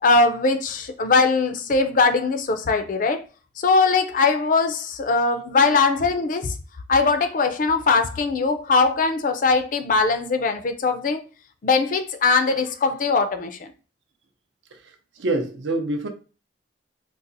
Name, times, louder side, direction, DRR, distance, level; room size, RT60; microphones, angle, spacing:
voice 1, 0.0-3.2 3.6-6.5 6.9-11.2 11.6-13.7, left 4 dB, 45° left, 0.4 m, -21 dB
voice 2, 15.2-16.1, right 2 dB, 85° right, 0.6 m, -25 dB
3.9 x 2.4 x 2.6 m
head